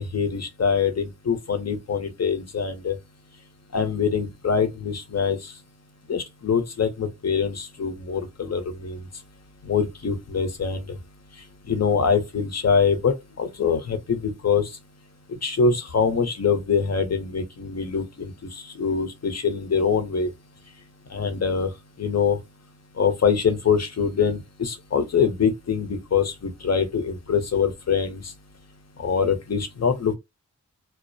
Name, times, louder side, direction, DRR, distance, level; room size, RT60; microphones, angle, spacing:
voice 1, 0.0-3.0 3.7-5.4 6.1-9.0 9.6-10.8 11.7-14.7 15.3-20.3 21.1-21.7 22.0-22.4 23.0-28.2 29.0-30.2, left 6 dB, 55° left, 0.7 m, -24 dB
2.3 x 2.1 x 2.6 m
wide cardioid pair, 60°, 32 cm